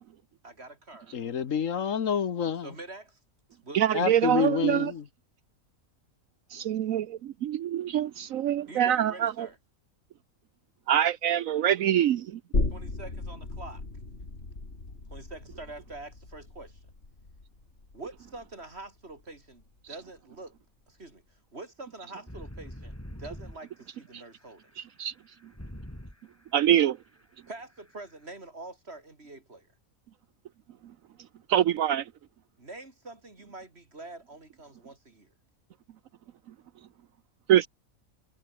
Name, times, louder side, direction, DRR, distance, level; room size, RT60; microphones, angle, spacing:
voice 1, 0.4-1.2 2.5-3.2 3.6-4.6 8.6-9.6 12.7-13.8 15.1-16.8 17.9-20.6 20.9-24.7 27.5-29.7 32.6-35.3, right 2 dB, 45° right, 4.1 m, -45 dB
voice 2, 1.1-2.7 3.9-5.0, left 7 dB, 70° left, 1.5 m, -28 dB
voice 3, 3.7-4.9 6.7-7.0 7.4-9.5 10.9-12.4 24.8-25.1 26.5-27.0 31.5-32.0 37.5-37.7, right 10 dB, 75° right, 1.1 m, -24 dB
sound 1, 12.5-19.8 20.2-20.3, left 2 dB, 50° left, 4.0 m, -36 dB
sound 2, 22.3-26.2 26.4-26.7 27.1-27.2 27.5-27.6 27.9-28.1, equal, 10° left, 5.6 m, -43 dB
omnidirectional pair, 1.4 m